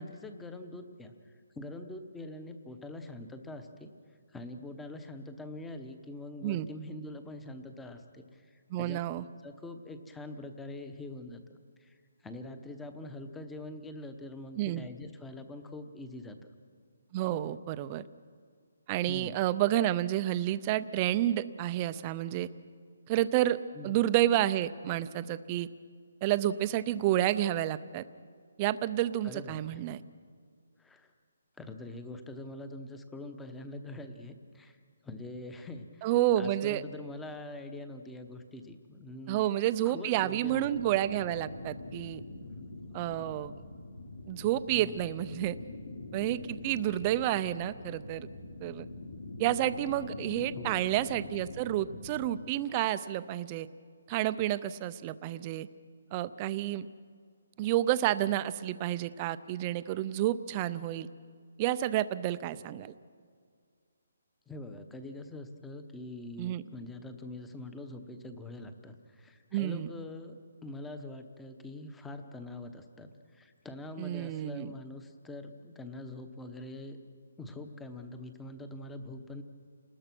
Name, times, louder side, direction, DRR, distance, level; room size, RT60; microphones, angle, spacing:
voice 1, 0.0-3.9 4.3-9.0 9.4-11.4 11.8-16.5 19.1-19.4 23.7-24.0 29.2-29.8 30.8-31.1 31.6-36.1 36.4-39.4 39.8-40.8 44.7-45.1 50.5-50.8 64.5-77.0 77.4-79.4, left 2 dB, 5° left, 8 dB, 0.9 m, -44 dB
voice 2, 8.7-9.2 14.6-14.8 17.1-18.0 18.9-22.5 23.1-23.6 23.8-25.7 26.2-28.0 28.6-30.0 36.0-36.8 39.3-42.2 42.9-43.5 44.3-45.6 46.1-48.3 48.6-48.9 49.4-53.7 54.1-55.7 56.1-56.9 57.6-61.1 61.6-62.9 66.4-66.6 69.5-69.9 74.0-74.7, right 13 dB, 20° right, 14 dB, 0.5 m, -30 dB
sound 1, 40.4-52.4, left 2 dB, 70° left, 3.4 m, -44 dB
29.5 x 20.0 x 6.1 m, 2.1 s
hypercardioid pair, 175°, 0 cm